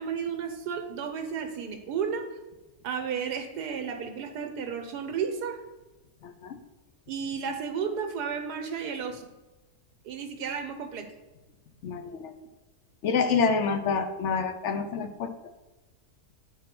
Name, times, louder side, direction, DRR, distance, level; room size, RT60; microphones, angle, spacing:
voice 1, 0.0-2.3 2.8-5.6 7.1-9.2 10.0-11.1, right 6 dB, 85° right, 5 dB, 1.5 m, -33 dB
voice 2, 6.2-6.6 11.8-12.3 13.0-15.3, left 5 dB, 60° left, 8 dB, 0.8 m, -27 dB
8.7 x 4.2 x 5.9 m, 1.1 s
omnidirectional pair, 1.7 m